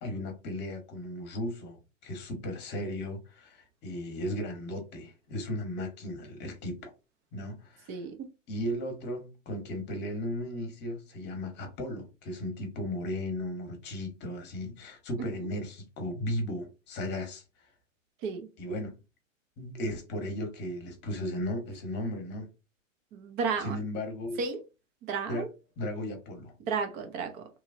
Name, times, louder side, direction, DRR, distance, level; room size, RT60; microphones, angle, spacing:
voice 1, 0.0-6.9 7.3-8.0 8.5-17.7 18.6-19.0 19.6-22.5 23.6-24.4 25.3-25.5 25.8-26.5, left 1 dB, 25° left, 1.0 m, -36 dB
voice 2, 7.9-8.3 18.2-18.5 23.1-23.8 24.4-24.6 25.1-25.5 26.7-27.5, right 5 dB, 25° right, 0.5 m, -32 dB
3.1 x 2.3 x 2.4 m
figure-of-eight pair, 105°, 39 cm